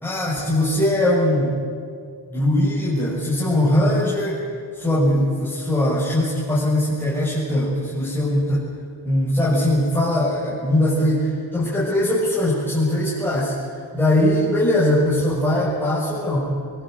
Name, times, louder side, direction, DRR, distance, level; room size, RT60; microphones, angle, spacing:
voice 1, 0.0-1.6 2.3-4.4 4.7-8.7 9.0-13.5 13.9-16.6, left 1 dB, 5° left, -9 dB, 6.7 m, -20 dB
23.5 x 22.5 x 8.0 m, 2.2 s
wide cardioid pair, 120°, 45 cm